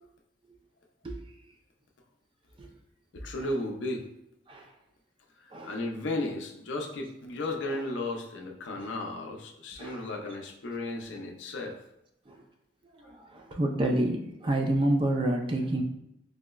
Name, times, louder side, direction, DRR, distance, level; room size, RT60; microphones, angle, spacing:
voice 1, 3.1-4.0 5.4-11.8 13.0-13.1, left 2 dB, 75° left, 1 dB, 0.5 m, -34 dB
voice 2, 13.3-15.8, right 1 dB, 25° right, 2 dB, 0.3 m, -28 dB
4.7 x 2.0 x 2.2 m, 0.82 s
head